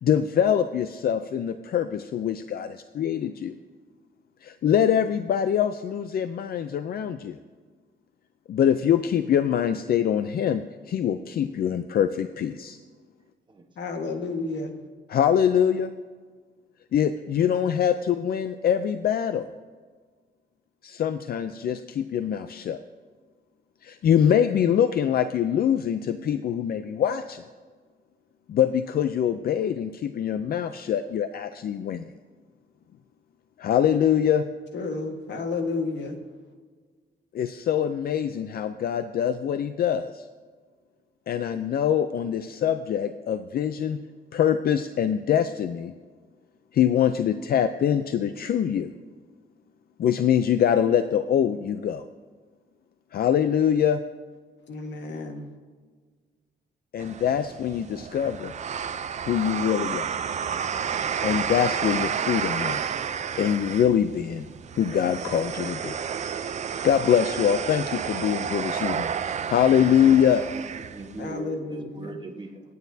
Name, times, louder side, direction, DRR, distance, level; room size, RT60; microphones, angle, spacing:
voice 1, 0.0-3.5 4.4-7.4 8.5-12.8 15.1-15.9 16.9-19.5 20.8-22.8 23.8-27.4 28.5-32.1 33.6-34.5 37.3-40.3 41.3-44.0 44.3-45.9 46.7-48.9 50.0-52.0 53.1-54.0 56.9-58.5 59.2-60.2 61.2-63.0 63.4-64.5 64.8-66.0 66.8-69.1 69.5-70.4, left 9 dB, 55° left, 10 dB, 0.4 m, -24 dB
voice 2, 13.8-14.8 34.7-36.2 54.7-55.5 71.2-72.2, left 3 dB, 75° left, 4 dB, 1.6 m, -31 dB
sound 1, 57.0-71.3, right 7 dB, 40° right, 0.5 m, -31 dB
voice 3, 70.5-72.6, right 2 dB, 25° right, 3 dB, 1.2 m, -39 dB
25.0 x 9.4 x 2.7 m, 1.5 s
wide cardioid pair, 170°, 18 cm